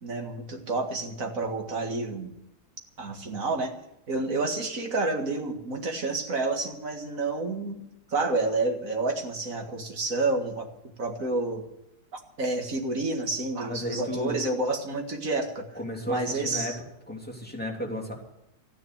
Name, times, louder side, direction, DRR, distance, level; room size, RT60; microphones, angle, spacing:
voice 1, 0.0-2.3 3.0-3.8 4.1-7.9 8.1-10.7 11.0-11.6 12.1-15.7 16.1-16.8, right 3 dB, 55° right, 3 dB, 2.3 m, -29 dB
voice 2, 13.6-14.4 15.7-16.7 17.1-18.1, equal, 5° left, -1 dB, 2.9 m, -33 dB
14.0 x 10.0 x 8.0 m, 0.82 s
omnidirectional pair, 1.7 m